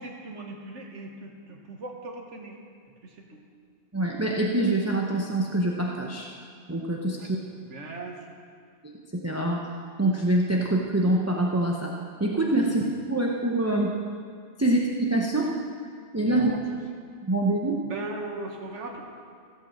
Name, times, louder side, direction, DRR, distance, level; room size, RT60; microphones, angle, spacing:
voice 1, 0.0-2.6 3.0-3.4 7.2-7.3 7.6-8.3 12.6-12.9 14.6-14.8 16.2-16.4 17.8-19.0, right 2 dB, 75° right, 1 dB, 1.7 m, -39 dB
voice 2, 3.9-6.3 6.7-7.4 9.1-9.6 10.0-11.9 12.2-12.8 13.1-13.9 14.6-15.5 16.1-16.5 17.2-17.8, right 1 dB, 15° right, -2 dB, 0.8 m, -25 dB
15.5 x 5.7 x 7.3 m, 2.2 s
omnidirectional pair, 1.2 m